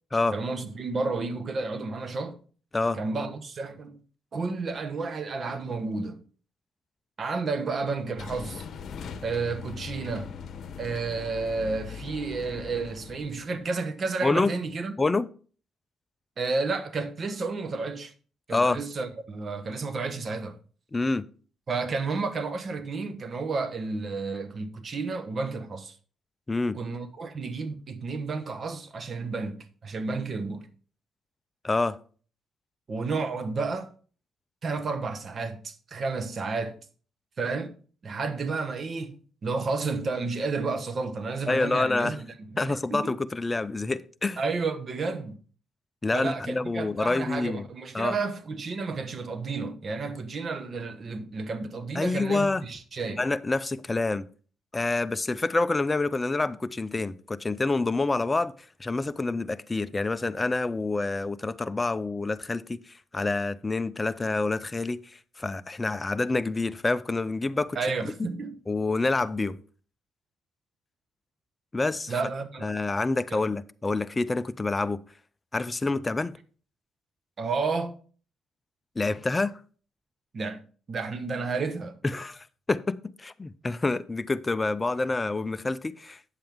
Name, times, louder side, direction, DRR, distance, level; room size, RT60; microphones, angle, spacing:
voice 1, 0.3-2.4 2.9-4.0 4.3-6.2 7.2-8.6 9.2-10.3 10.8-14.9 16.4-18.1 18.5-20.6 21.7-25.9 26.7-30.7 32.9-33.9 34.6-36.8 37.4-37.7 38.0-39.2 39.4-42.3 42.5-43.1 44.4-45.4 46.1-53.2 67.7-68.5 72.1-72.7 73.3-73.4 77.4-77.9 80.3-80.6 80.9-82.0, right 4 dB, 45° right, 1.1 m, -31 dB
sound 1, 8.2-13.7, left 6 dB, 60° left, 1.0 m, -41 dB
voice 2, 14.2-14.5 15.0-15.3 18.5-18.8 20.9-21.3 26.5-26.8 31.6-32.0 41.5-42.2 42.6-44.4 46.0-47.7 47.9-48.2 51.9-52.6 53.2-54.3 54.7-58.5 58.8-67.8 68.0-68.1 68.7-69.6 71.7-72.2 72.6-75.0 75.5-76.3 79.0-79.6 82.0-86.2, left 3 dB, 20° left, 0.5 m, -27 dB
8.9 x 7.5 x 3.5 m
cardioid pair, 90°, 0 cm